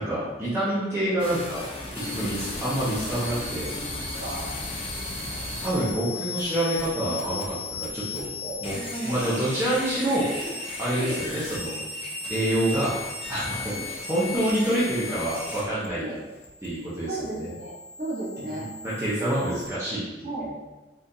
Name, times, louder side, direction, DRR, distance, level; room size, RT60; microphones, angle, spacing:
voice 1, 0.0-1.6 2.2-3.7 5.6-7.4 7.8-8.3 8.6-8.7 9.0-11.8 12.3-13.0 13.3-16.1 16.6-17.5 18.6-20.5, right 1 dB, 15° right, -10 dB, 0.7 m, -27 dB
sound 1, 1.2-19.7, left 2 dB, 30° left, 0.6 m, -35 dB
voice 2, 4.2-4.5 7.2-7.3 8.4-8.6 8.9-9.4 9.9-10.0 10.4-10.5 11.0-11.2 16.0-16.2 17.1-17.7 18.0-18.7 20.2-20.5, right 2 dB, 45° right, -8 dB, 1.2 m, -34 dB
3.7 x 2.5 x 2.7 m, 1.1 s
head